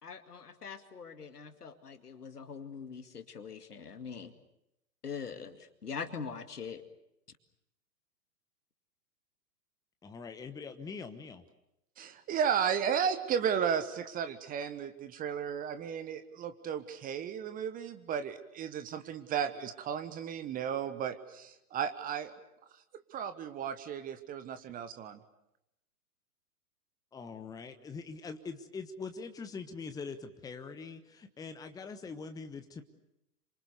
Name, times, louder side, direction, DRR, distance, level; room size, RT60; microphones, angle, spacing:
voice 1, 0.0-4.3 5.0-6.8, left 6 dB, 75° left, 9 dB, 2.4 m, -43 dB
voice 2, 10.0-11.4 27.1-32.8, left 4 dB, 10° left, 8 dB, 1.1 m, -43 dB
voice 3, 12.0-22.3 23.1-25.2, right 8 dB, 20° right, 11 dB, 1.2 m, -34 dB
27.5 x 25.0 x 6.8 m, 0.84 s
figure-of-eight pair, 110°, 47 cm